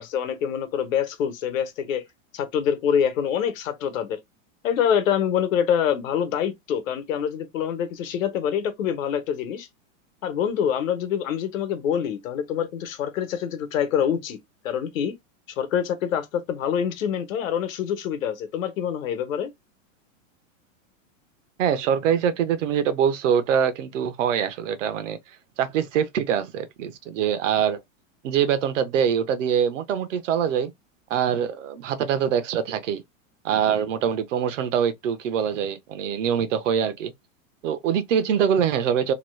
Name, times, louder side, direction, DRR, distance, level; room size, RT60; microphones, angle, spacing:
voice 1, 0.0-2.0 2.3-4.2 4.6-9.7 10.2-14.4 14.6-15.2 15.5-19.5, left 8 dB, 80° left, 1.0 m, -25 dB
voice 2, 21.6-25.2 25.6-27.8 28.2-30.7 31.1-33.0 33.4-37.1 37.6-39.1, right 8 dB, 65° right, 0.8 m, -24 dB
3.0 x 2.3 x 3.1 m
supercardioid pair, 165°, 40 cm